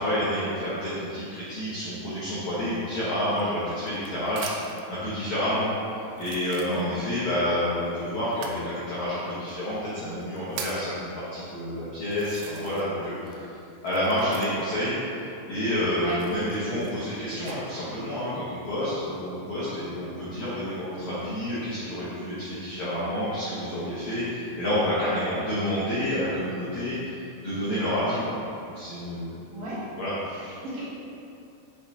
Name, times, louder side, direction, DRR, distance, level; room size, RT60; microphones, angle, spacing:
voice 1, 0.0-4.5 4.9-5.7 6.2-13.5 13.8-15.0 15.5-28.4 28.7-29.3 30.0-30.1, left 1 dB, 80° left, -11 dB, 1.6 m, -29 dB
sound 1, 3.2-4.9 5.6-5.7 6.1-7.2 8.3-8.6 9.5-9.6 10.1-10.9 11.6-11.7 12.1-13.0 13.3-14.8 16.0-17.6 18.2-18.7, right 6 dB, 85° right, 2.8 m, -41 dB
voice 2, 6.6-7.0 16.0-16.1 29.5-29.8 30.2-30.8, right 2 dB, 65° right, -10 dB, 2.3 m, -36 dB
7.7 x 5.2 x 2.9 m, 2.7 s
omnidirectional pair, 5.3 m